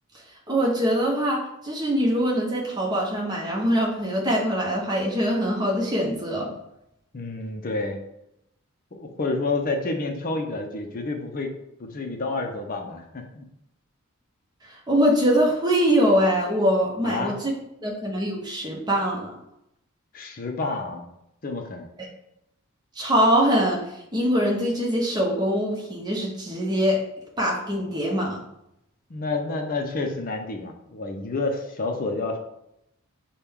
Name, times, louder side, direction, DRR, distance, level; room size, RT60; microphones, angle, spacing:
voice 1, 0.5-6.5 14.7-17.5 17.8-19.3 23.0-27.0 27.4-28.4, equal, 20° right, -3 dB, 0.9 m, -23 dB
voice 2, 7.1-8.0 8.9-11.5 11.8-13.5 17.0-17.3 20.1-21.1 21.4-21.9 29.1-32.4, left 3 dB, 40° left, 3 dB, 0.6 m, -29 dB
5.9 x 2.3 x 3.5 m, 0.82 s
head